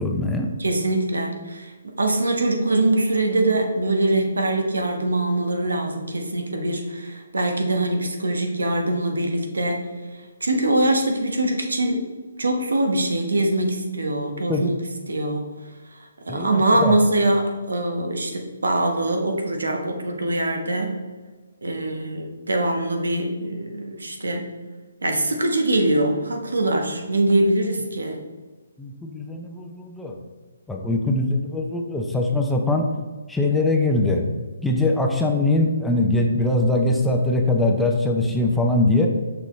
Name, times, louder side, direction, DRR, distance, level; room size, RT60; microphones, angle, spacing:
voice 1, 0.0-0.5 14.5-14.7 16.3-17.0 28.8-30.2 30.7-32.9 33.3-34.2 34.6-39.1, left 2 dB, 5° left, 1 dB, 0.6 m, -22 dB
voice 2, 0.6-9.9 10.4-12.0 12.4-14.8 15.1-15.5 16.3-21.0 21.6-24.5 25.0-28.2, right 1 dB, 85° right, 3 dB, 1.1 m, -23 dB
6.3 x 5.4 x 3.2 m, 1.3 s
hypercardioid pair, 150°, 0 cm